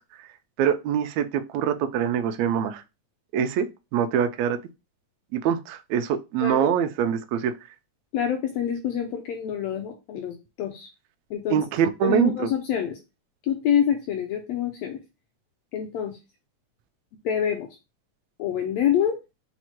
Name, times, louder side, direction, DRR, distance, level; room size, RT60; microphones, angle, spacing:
voice 1, 0.6-2.8 3.3-3.7 3.9-4.6 5.3-7.5 11.5-12.5, right 8 dB, 80° right, 1.6 m, -24 dB
voice 2, 6.4-6.7 8.1-10.9 11.3-11.6 12.0-13.0 13.4-15.0 15.7-16.2 17.2-17.7 18.4-19.2, left 9 dB, 85° left, 1.5 m, -26 dB
6.1 x 2.1 x 2.9 m
omnidirectional pair, 3.5 m